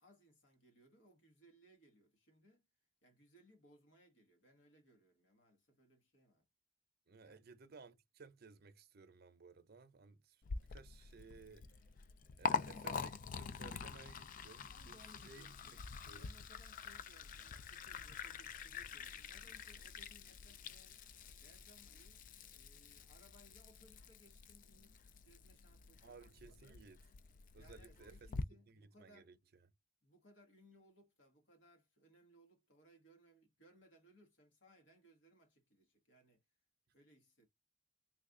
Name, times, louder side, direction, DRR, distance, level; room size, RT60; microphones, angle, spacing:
voice 1, 0.0-2.7 3.0-6.5 7.2-7.4 14.7-21.0 21.3-26.8 27.6-29.3 30.0-36.4 36.9-37.5, equal, 75° left, 1.4 m, -67 dB
voice 2, 7.1-10.4 10.7-11.8 12.4-15.8 16.0-16.4 26.0-27.0 27.5-28.3 28.7-29.4, right 4 dB, 55° right, 0.6 m, -58 dB
Liquid, 10.4-28.4, left 5 dB, 45° left, 0.3 m, -46 dB
3.3 x 2.3 x 3.7 m
head